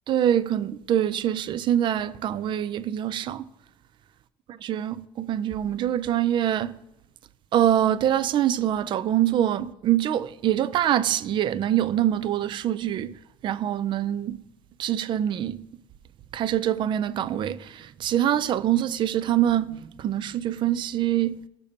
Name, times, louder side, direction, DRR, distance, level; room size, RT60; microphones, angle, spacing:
voice 1, 0.1-3.5 4.6-6.7 7.5-14.4 14.8-15.7 16.3-21.4, right 11 dB, 50° right, 0.4 m, -24 dB
14.0 x 6.6 x 2.8 m
cardioid pair, 105°, 11 cm